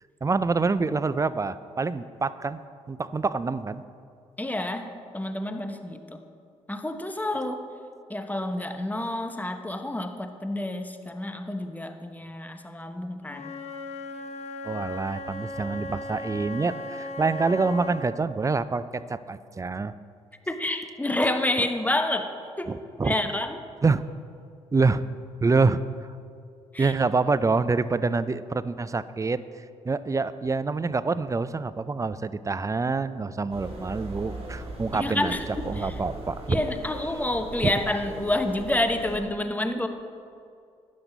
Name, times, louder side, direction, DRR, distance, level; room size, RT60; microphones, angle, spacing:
voice 1, 0.2-2.6 2.9-3.8 14.6-19.9 22.7-23.1 23.8-24.0 24.7-25.0 25.4-25.8 26.8-29.4 29.8-35.4 35.7-36.6 37.6-37.7, right 4 dB, 20° right, 15 dB, 0.5 m, -26 dB
voice 2, 4.4-6.2 6.7-7.7 8.1-13.5 20.5-22.3 22.6-22.8 23.0-23.6 26.7-26.9 34.9-35.9 36.5-39.9, left 1 dB, 10° left, 7 dB, 1.1 m, -29 dB
Wind instrument woodwind instrument, 13.3-18.1, left 2 dB, 50° left, 1.1 m, -37 dB
sound 1, 33.5-39.2, right 2 dB, 45° right, 3.1 m, -39 dB
12.5 x 9.8 x 4.0 m, 2.4 s
hypercardioid pair, 50°, 15 cm